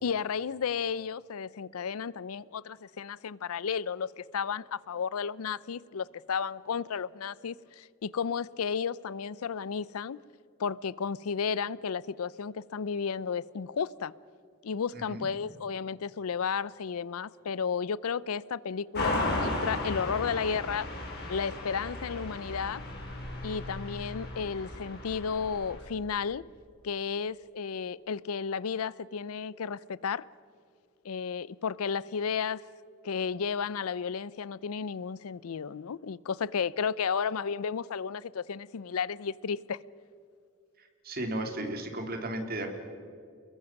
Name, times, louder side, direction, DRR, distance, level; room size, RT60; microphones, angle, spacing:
voice 1, 0.0-10.2 10.6-14.1 14.6-20.9 21.3-22.8 23.4-26.5 26.8-30.3 31.0-32.7 33.0-39.8, left 6 dB, 90° left, 0.5 m, -33 dB
voice 2, 14.9-15.3 41.0-42.8, right 1 dB, 45° right, 2.8 m, -34 dB
sound 1, 18.9-25.8, left 1 dB, 50° left, 5.4 m, -35 dB
29.0 x 22.0 x 5.9 m
head